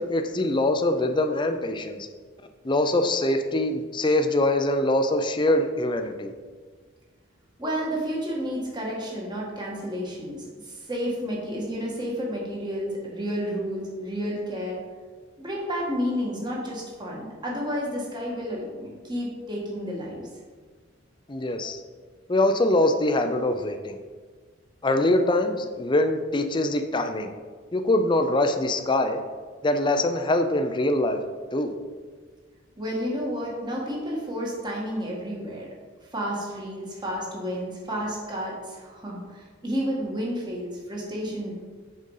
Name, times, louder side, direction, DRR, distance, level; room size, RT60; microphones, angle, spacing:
voice 1, 0.0-2.1 2.6-6.3 21.3-21.8 22.3-24.0 24.8-27.3 27.7-29.2 29.6-31.2 31.5-31.7, left 1 dB, 25° left, 6 dB, 0.5 m, -23 dB
voice 2, 7.6-14.8 15.4-20.3 32.8-35.7 36.1-41.5, equal, 20° right, -3 dB, 1.6 m, -31 dB
6.4 x 5.2 x 5.4 m, 1.5 s
head